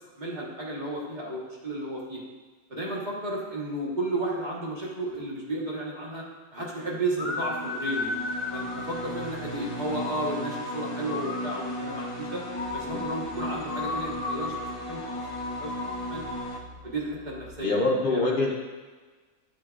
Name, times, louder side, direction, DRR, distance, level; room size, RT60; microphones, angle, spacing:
voice 1, 0.2-2.2 2.7-6.2 6.5-8.1 8.5-12.4 12.7-14.5 14.9-15.0 15.6-15.7 16.1-16.2 16.8-18.3, right 1 dB, 35° right, -4 dB, 1.3 m, -33 dB
sound 1, 7.2-16.6, left 2 dB, 40° left, 1.0 m, -33 dB
sound 2, 12.6-17.6, equal, 80° right, 0.4 m, -49 dB
voice 2, 17.6-18.5, left 2 dB, 60° left, 0 dB, 0.5 m, -24 dB
8.9 x 6.2 x 2.4 m, 1.4 s
omnidirectional pair, 1.6 m